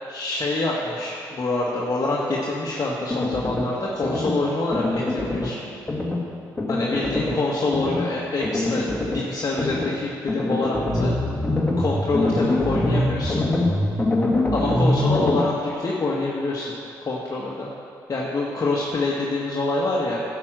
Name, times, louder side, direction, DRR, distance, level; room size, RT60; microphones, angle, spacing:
voice 1, 0.1-5.6 6.7-8.9 9.1-11.1 11.8-13.5 14.5-16.7 17.0-17.7 18.1-20.2, left 2 dB, 40° left, -4 dB, 1.5 m, -26 dB
sound 1, 3.1-3.7 4.0-4.4 4.7-5.5 5.9-6.2 6.6-7.4 7.7-8.1 8.4-9.2 9.6-9.9 10.3-15.4, left 2 dB, 15° left, 2.1 m, -24 dB
10.5 x 6.1 x 7.6 m, 2.5 s
hypercardioid pair, 50°, 9 cm